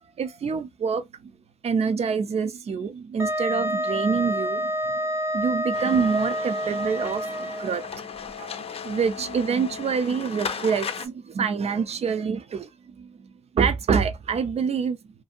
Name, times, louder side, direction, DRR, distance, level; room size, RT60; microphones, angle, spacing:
voice 1, 0.2-1.0 1.6-4.7 5.3-7.8 8.4-12.7 13.0-13.2 13.5-15.0, right 6 dB, 65° right, 0.4 m, -26 dB
Wind instrument woodwind instrument, 3.2-7.9, right 1 dB, 20° right, 0.6 m, -28 dB
sound 1, 5.7-11.1, left 6 dB, 55° left, 0.4 m, -36 dB
2.6 x 2.6 x 2.4 m
wide cardioid pair, 110°, 12 cm